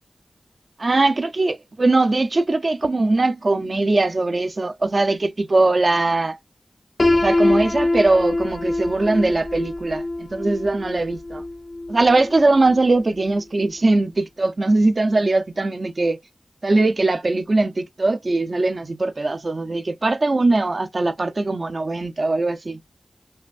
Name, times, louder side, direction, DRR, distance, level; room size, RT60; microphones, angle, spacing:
voice 1, 0.8-6.4 7.1-11.4 11.9-16.2 16.6-22.8, right 2 dB, 55° right, 0.6 m, -20 dB
Piano, 7.0-12.8, left 2 dB, 50° left, 0.7 m, -24 dB
5.6 x 2.5 x 2.5 m
cardioid pair, 50°, 0 cm